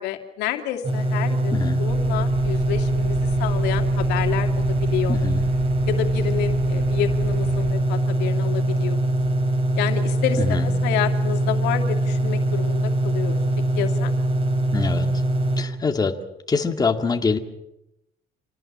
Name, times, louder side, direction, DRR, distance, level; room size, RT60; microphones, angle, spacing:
voice 1, 0.0-5.2 5.9-9.1 9.8-13.4 13.8-14.1, left 11 dB, 90° left, 5 dB, 2.6 m, -29 dB
sound 1, 0.8-15.6, right 1 dB, 35° right, 5.6 m, -22 dB
voice 2, 1.5-1.8 5.1-5.5 10.4-10.7 14.7-15.2 15.6-16.2 16.5-17.4, left 4 dB, 25° left, 5 dB, 2.1 m, -24 dB
sound 2, 1.9-7.7, right 8 dB, 75° right, 2.5 m, -34 dB
27.5 x 18.5 x 7.5 m, 0.86 s
cardioid pair, 110°, 17 cm